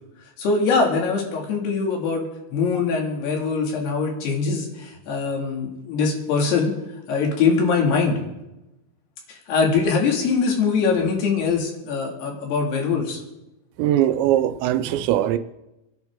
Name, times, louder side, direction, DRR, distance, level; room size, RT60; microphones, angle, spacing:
voice 1, 0.4-6.7 7.1-8.2 9.3-13.2, left 5 dB, 65° left, 0 dB, 4.4 m, -22 dB
voice 2, 13.8-15.4, right 12 dB, 80° right, 12 dB, 2.9 m, -20 dB
28.0 x 11.0 x 3.8 m, 0.96 s
omnidirectional pair, 5.4 m